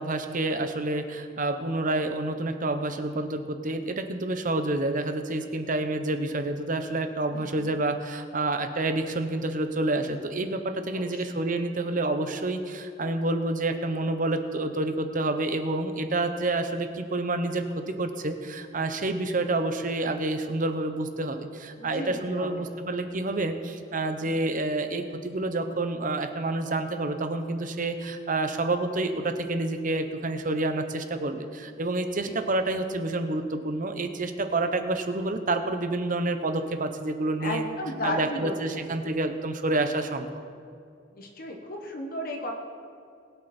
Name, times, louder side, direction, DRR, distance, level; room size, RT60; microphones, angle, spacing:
voice 1, 0.0-37.6 38.0-40.3, right 2 dB, 45° right, 7 dB, 1.0 m, -28 dB
voice 2, 7.3-7.6 10.9-11.2 21.8-22.6 32.3-32.4 37.4-38.9 41.1-42.5, left 1 dB, 50° left, 1 dB, 1.4 m, -34 dB
21.5 x 7.9 x 4.4 m, 2.4 s
head